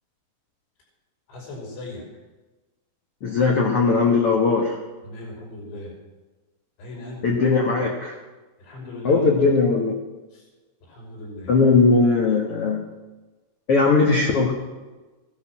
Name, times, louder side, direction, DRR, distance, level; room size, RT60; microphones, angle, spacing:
voice 1, 1.3-2.0 5.0-5.9 6.8-7.4 8.6-9.5 10.3-10.5 10.8-11.5, left 2 dB, 85° left, -3 dB, 7.9 m, -37 dB
voice 2, 3.2-4.8 7.2-8.2 9.0-9.9 11.5-12.8 13.7-14.5, left 4 dB, 60° left, 0 dB, 1.5 m, -19 dB
16.5 x 12.5 x 6.1 m, 1.2 s
omnidirectional pair, 5.1 m